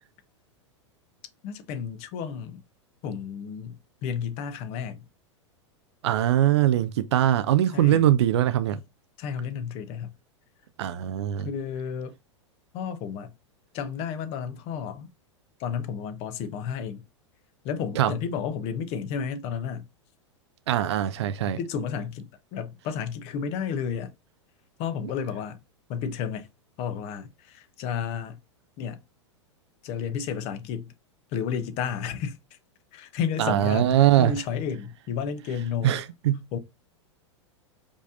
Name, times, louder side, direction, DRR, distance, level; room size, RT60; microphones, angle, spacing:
voice 1, 1.4-2.6 3.0-5.1 7.7-8.0 9.2-10.2 11.4-12.1 12.7-13.3 13.7-15.1 15.6-17.0 17.6-19.9 21.4-24.1 24.8-25.6 25.9-26.5 26.8-28.4 28.8-29.0 29.8-30.9 31.3-32.4 32.9-36.0 36.5-36.6, left 7 dB, 40° left, 0.9 m, -32 dB
voice 2, 6.0-8.8 10.8-11.5 18.0-18.1 20.7-21.6 33.4-34.3 35.8-36.4, right 12 dB, 65° right, 0.5 m, -22 dB
5.2 x 3.4 x 2.6 m
figure-of-eight pair, 95°, 16 cm